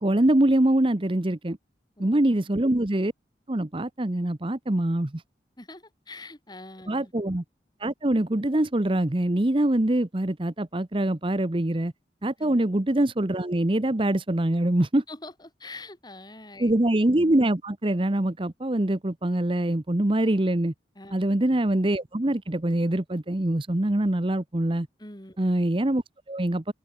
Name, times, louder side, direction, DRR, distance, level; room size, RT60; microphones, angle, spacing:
voice 1, 0.0-1.6 2.0-3.1 3.5-5.2 6.9-7.4 7.8-11.9 12.2-15.0 16.6-20.7 21.1-24.9 25.4-26.7, right 1 dB, 30° right, 0.9 m, -24 dB
voice 2, 2.0-2.3 5.6-7.1 12.4-12.6 15.1-16.7 21.0-21.2 25.0-25.4, left 2 dB, 25° left, 7.7 m, -44 dB
head